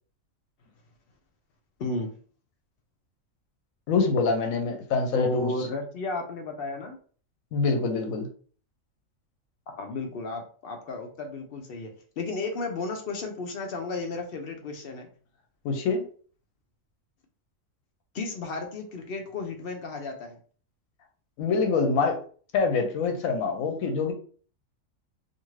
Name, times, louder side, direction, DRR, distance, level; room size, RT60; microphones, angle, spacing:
voice 1, 1.8-2.1 5.1-7.0 9.7-15.1 18.1-20.4, left 3 dB, 60° left, 4 dB, 0.6 m, -33 dB
voice 2, 3.9-5.5 7.5-8.3 15.6-16.0 21.4-22.2 22.5-24.1, left 4 dB, 85° left, 4 dB, 1.0 m, -25 dB
2.5 x 2.5 x 3.1 m, 0.43 s
omnidirectional pair, 1.4 m